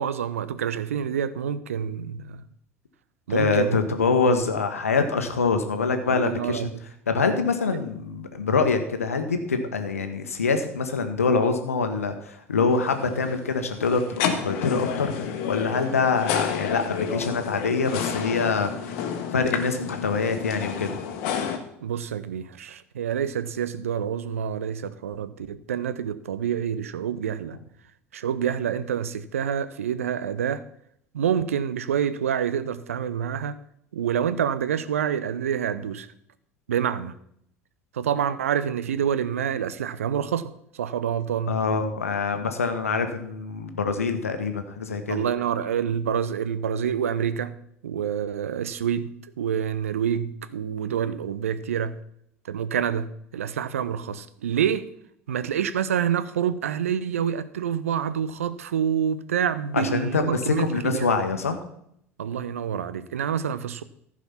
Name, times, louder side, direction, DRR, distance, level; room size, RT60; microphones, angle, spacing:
voice 1, 0.0-2.4 3.3-3.8 6.1-6.8 7.7-7.8 21.8-27.6 28.1-30.6 31.1-33.6 33.9-36.1 36.7-37.1 37.9-41.6 45.1-47.5 47.8-49.1 49.4-52.0 52.5-54.9 55.3-61.1 62.2-63.8, right 8 dB, 70° right, 0.6 m, -27 dB
voice 2, 3.3-6.7 7.1-21.0 41.5-45.2 59.7-61.6, left 4 dB, 80° left, 1.2 m, -25 dB
sound 1, 12.7-21.6, left 7 dB, 55° left, 1.3 m, -30 dB
14.5 x 5.0 x 5.8 m
figure-of-eight pair, 70°, 8 cm